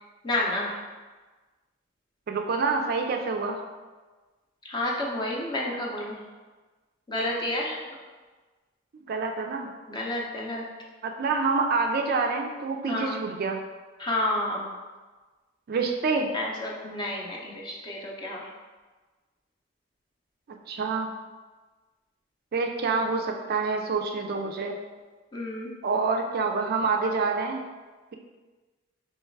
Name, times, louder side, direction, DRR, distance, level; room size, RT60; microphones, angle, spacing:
voice 1, 0.2-0.7 4.6-6.2 7.1-7.8 9.9-10.7 12.9-13.2 14.0-14.7 16.3-18.5 25.3-25.7, left 1 dB, 20° left, -2 dB, 0.6 m, -30 dB
voice 2, 2.3-3.6 8.9-9.7 11.0-13.6 15.7-16.3 20.7-21.1 22.5-24.8 25.8-27.6, right 4 dB, 45° right, 3 dB, 0.3 m, -27 dB
3.3 x 3.1 x 4.5 m, 1.3 s
head